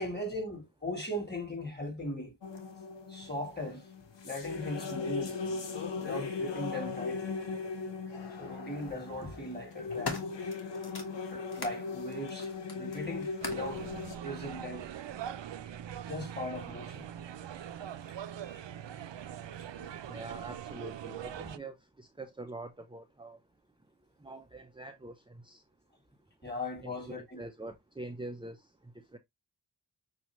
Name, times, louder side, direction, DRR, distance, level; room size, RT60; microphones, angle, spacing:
voice 1, 0.0-2.3 3.1-3.9 4.2-5.6 6.0-7.3 8.4-10.2 11.3-13.9 14.2-14.9 16.1-17.1 19.7-19.9 26.4-27.4, left 1 dB, 25° left, 2.9 m, -39 dB
sound 1, 2.4-14.1, left 4 dB, 90° left, 1.0 m, -38 dB
sound 2, 7.4-7.5 8.6-9.0 9.5-11.8 12.3-13.8 14.6-14.7, left 3 dB, 60° left, 1.4 m, -42 dB
sound 3, 13.4-21.6, right 9 dB, 85° right, 0.5 m, -42 dB
voice 2, 20.0-25.6 26.1-26.5 26.8-29.2, right 2 dB, 10° right, 0.6 m, -45 dB
6.1 x 2.8 x 3.0 m
wide cardioid pair, 45°, 43 cm